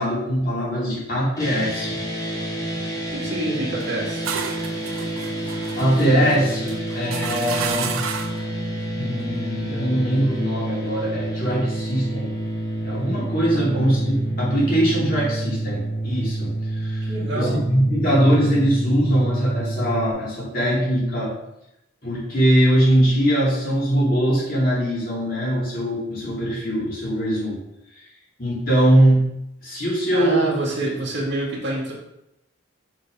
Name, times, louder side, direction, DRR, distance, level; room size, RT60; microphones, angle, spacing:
voice 1, 0.0-2.0 5.8-8.0 9.0-12.3 12.8-17.1 17.3-21.4 22.0-27.6 27.9-28.0 28.4-29.3 29.6-30.5, equal, 45° left, -6 dB, 2.5 m, -21 dB
sound 1, 1.4-20.1, right 1 dB, 15° left, 1.1 m, -28 dB
voice 2, 3.1-4.3 17.1-17.6 30.1-31.9, right 2 dB, 55° right, -4 dB, 1.8 m, -27 dB
sound 2, 3.8-8.5, right 7 dB, 90° right, 0.6 m, -32 dB
6.3 x 3.5 x 5.2 m, 0.83 s
head